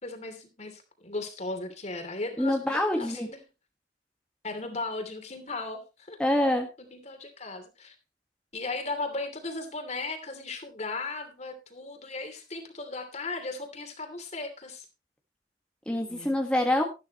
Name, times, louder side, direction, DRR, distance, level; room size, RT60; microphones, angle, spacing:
voice 1, 0.0-3.4 4.4-6.2 6.9-7.9 8.5-14.8 16.1-16.3, left 3 dB, 40° left, 7 dB, 2.9 m, -36 dB
voice 2, 2.4-3.3 6.2-6.7 15.9-16.8, left 1 dB, 5° left, 1 dB, 1.5 m, -25 dB
13.0 x 12.0 x 3.0 m, 0.29 s
head